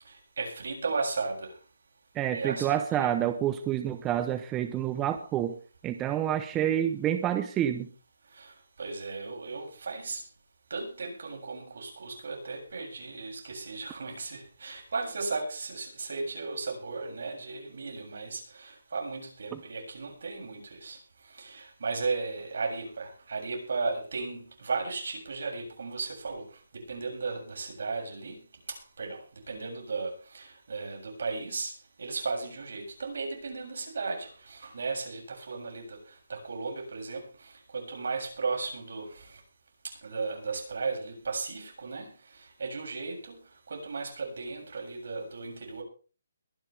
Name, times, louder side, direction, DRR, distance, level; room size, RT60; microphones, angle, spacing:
voice 1, 0.1-1.5 2.3-3.1 8.3-8.5 8.8-10.2 10.7-21.0 21.3-26.4 26.7-28.4 28.7-29.2 29.5-31.7 32.0-36.0 36.3-39.4 39.8-42.1 42.6-43.4 43.7-45.8, right 4 dB, 65° right, 1 dB, 7.2 m, -35 dB
voice 2, 2.1-5.6 5.8-7.9 19.5-19.6, right 11 dB, 15° right, 9 dB, 0.8 m, -28 dB
22.0 x 11.0 x 3.5 m, 0.37 s
hypercardioid pair, 165°, 0 cm